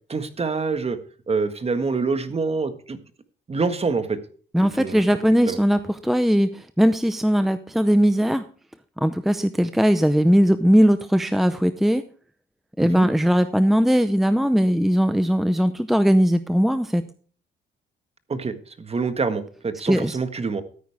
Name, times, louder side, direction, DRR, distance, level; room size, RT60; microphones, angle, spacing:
voice 1, 0.1-1.0 1.3-3.0 3.5-4.2 4.6-5.0 5.5-5.6 12.8-13.1 18.3-20.6, right 4 dB, 30° right, 10 dB, 1.6 m, -26 dB
voice 2, 4.5-8.4 9.0-12.0 12.8-17.0 19.9-20.2, equal, ahead, 11 dB, 0.6 m, -19 dB
13.5 x 9.4 x 3.5 m, 0.43 s
cardioid pair, 90°, 20 cm